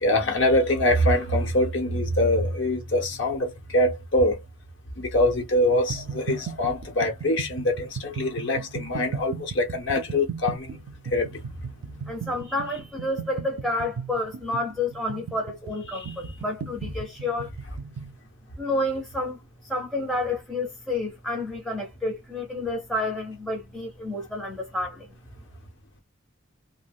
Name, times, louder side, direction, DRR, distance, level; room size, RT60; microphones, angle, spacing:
voice 1, 0.0-4.4 5.0-10.7 11.1-11.3 15.9-16.0, left 1 dB, 60° left, 1.0 m, -24 dB
sound 1, 5.9-18.2, right 6 dB, 85° right, 0.3 m, -36 dB
voice 2, 12.1-17.5 18.6-19.4 19.6-25.1, left 2 dB, ahead, 0.6 m, -30 dB
2.4 x 2.1 x 3.4 m
head